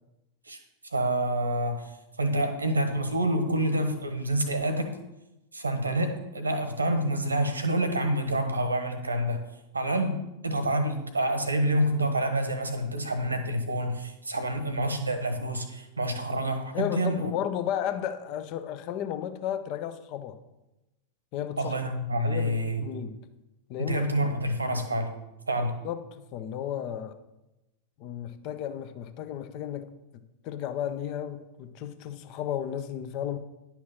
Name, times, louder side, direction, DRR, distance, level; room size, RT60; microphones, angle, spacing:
voice 1, 0.9-1.9 2.2-4.9 5.5-9.4 9.7-17.3 21.6-22.8 23.8-25.1 25.5-25.7, right 1 dB, 80° right, 1.2 m, -27 dB
voice 2, 16.7-20.4 21.3-21.8 22.1-23.3 23.7-24.1 25.6-27.2 28.0-33.4, left 10 dB, 45° left, 0.7 m, -34 dB
10.5 x 6.0 x 5.7 m
figure-of-eight pair, 90°, 0 cm